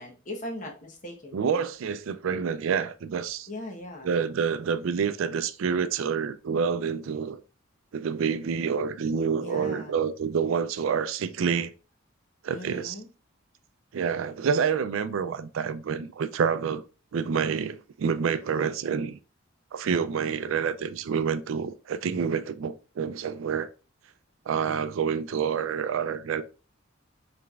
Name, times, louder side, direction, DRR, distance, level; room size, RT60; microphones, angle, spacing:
voice 1, 0.0-1.6 3.5-4.2 9.3-10.0 12.5-13.1 24.6-24.9, left 1 dB, 35° left, 1.0 m, -40 dB
voice 2, 1.3-3.5 4.0-7.4 7.9-11.7 12.4-12.9 13.9-16.8 17.1-19.2 19.7-23.7 24.5-26.4, right 6 dB, 75° right, 0.4 m, -28 dB
5.0 x 3.4 x 2.3 m
head